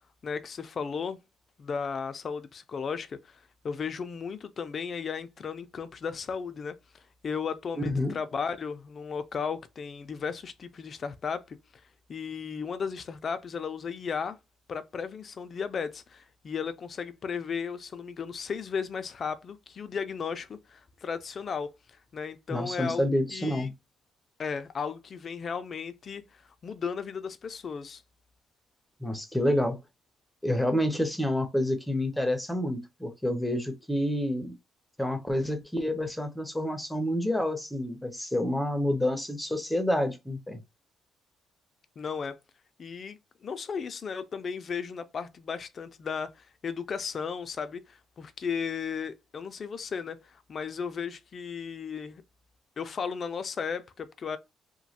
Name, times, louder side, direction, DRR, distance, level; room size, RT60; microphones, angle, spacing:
voice 1, 0.2-1.2 1.6-3.4 3.6-11.6 12.1-14.4 14.7-21.7 22.1-23.7 24.4-26.2 26.6-28.0 42.0-42.4 42.8-52.2 52.8-54.4, left 6 dB, 50° left, 0.4 m, -35 dB
voice 2, 7.7-8.2 22.5-23.7 29.0-29.8 30.4-34.5 35.0-40.6, left 1 dB, 5° left, 0.7 m, -28 dB
3.0 x 2.1 x 2.8 m
cardioid pair, 90°, 0 cm